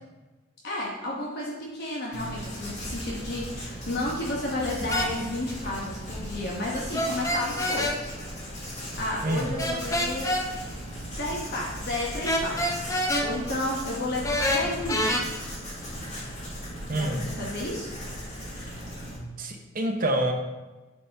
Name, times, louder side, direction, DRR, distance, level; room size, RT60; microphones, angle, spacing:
voice 1, 0.6-8.1 9.0-10.3 11.2-12.9 13.2-15.3 16.9-17.9, left 1 dB, 55° left, -4 dB, 1.1 m, -32 dB
Writing, 2.1-19.2, equal, 35° left, 2.0 m, -37 dB
sound 1, 4.9-5.1 6.9-8.0 9.6-10.4 12.3-13.3 14.2-15.2, left 1 dB, 15° left, 0.6 m, -26 dB
voice 2, 9.2-9.5 16.9-17.2 18.6-18.7 19.4-20.3, right 1 dB, 45° right, 3 dB, 0.8 m, -27 dB
9.2 x 4.2 x 3.5 m, 1.2 s
head